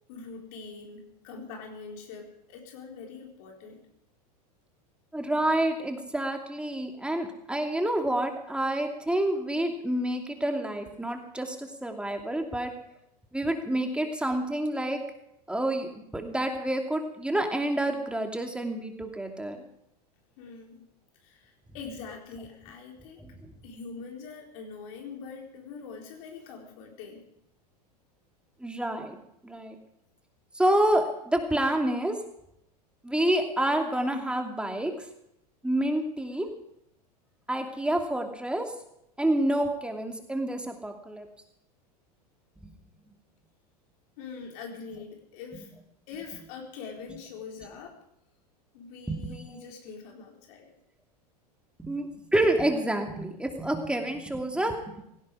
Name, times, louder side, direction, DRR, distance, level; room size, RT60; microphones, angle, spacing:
voice 1, 0.1-3.8 20.4-20.8 21.2-23.2 23.6-27.3 44.2-45.7 46.1-48.0 48.7-50.7, left 5 dB, 60° left, 1 dB, 4.4 m, -43 dB
voice 2, 5.1-12.7 13.3-15.0 15.5-19.6 23.2-23.3 28.6-29.8 30.5-32.2 33.0-34.9 35.6-36.5 37.5-38.7 39.2-41.3 42.6-42.7 49.1-49.7 51.8-54.9, right 1 dB, 5° right, 3 dB, 2.7 m, -28 dB
17.0 x 17.0 x 5.0 m, 0.78 s
hypercardioid pair, 90°, 21 cm